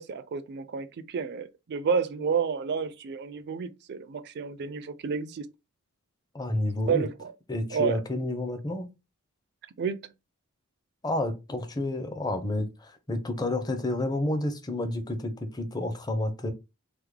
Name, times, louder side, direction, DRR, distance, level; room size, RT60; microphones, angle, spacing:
voice 1, 0.0-5.5 6.9-7.3 7.7-8.0 9.8-10.0, right 6 dB, 50° right, 0.4 m, -30 dB
voice 2, 6.3-7.1 7.5-8.9 11.0-16.5, left 1 dB, 20° left, 0.5 m, -30 dB
3.4 x 2.0 x 3.1 m
head